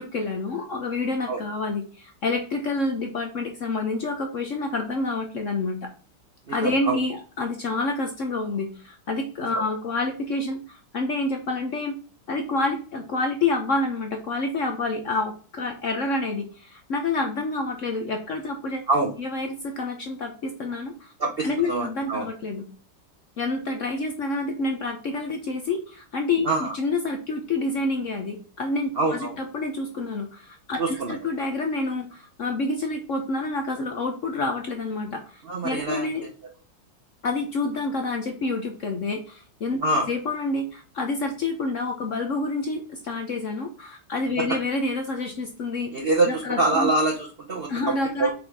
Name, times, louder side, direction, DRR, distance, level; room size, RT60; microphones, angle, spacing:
voice 1, 0.0-5.9 6.5-11.9 12.3-18.8 19.2-21.1 21.4-22.6 23.4-30.8 31.1-36.2 37.2-45.9 46.3-46.9 47.7-48.3, left 3 dB, 65° left, 4 dB, 0.7 m, -28 dB
voice 2, 6.5-7.0 18.9-19.1 21.2-22.3 26.4-26.7 29.0-29.3 30.8-31.2 35.4-36.1 39.8-40.1 44.4-44.5 45.9-48.3, right 2 dB, 60° right, 1 dB, 0.6 m, -25 dB
5.3 x 4.0 x 4.6 m, 0.40 s
omnidirectional pair, 2.3 m